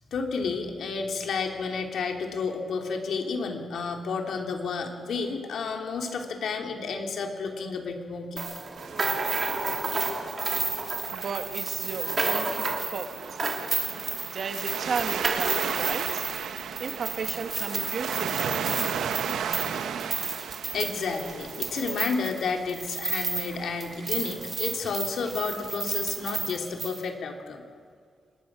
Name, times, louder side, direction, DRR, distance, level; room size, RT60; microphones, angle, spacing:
voice 1, 0.1-8.4 20.7-27.6, left 5 dB, 75° left, 3 dB, 2.9 m, -31 dB
sound 1, 8.4-23.5 23.8-27.0, right 3 dB, 35° right, 2.8 m, -31 dB
Waves surf, 8.8-26.6, right 7 dB, 85° right, 1.1 m, -36 dB
voice 2, 11.1-13.2 14.3-16.3 16.8-18.6, right 5 dB, 55° right, 7 dB, 1.6 m, -34 dB
26.0 x 21.0 x 6.2 m, 2.1 s
wide cardioid pair, 125°, 0 cm